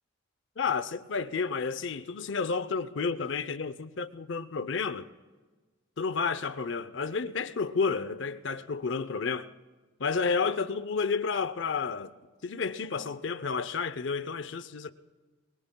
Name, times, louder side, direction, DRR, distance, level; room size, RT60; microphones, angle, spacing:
voice 1, 0.6-5.1 6.0-9.5 10.0-12.2 12.4-14.9, left 5 dB, 60° left, 0.6 m, -31 dB
24.0 x 21.5 x 2.3 m
head